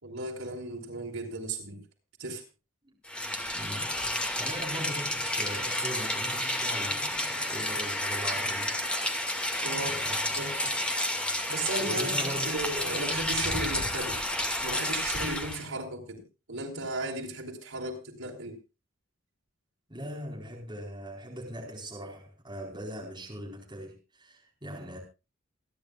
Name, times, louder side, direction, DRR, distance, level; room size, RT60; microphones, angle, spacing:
voice 1, 0.0-1.8 2.2-2.4 9.6-10.0 10.3-10.5 11.5-14.2 14.6-16.2 16.5-18.6, right 2 dB, 80° right, 4.8 m, -35 dB
Rain, 3.0-15.6, left 1 dB, 5° left, 2.1 m, -31 dB
voice 2, 3.5-8.8 9.7-10.7 11.8-12.6 19.9-25.0, equal, 20° right, 4.4 m, -40 dB
28.0 x 10.5 x 2.4 m
head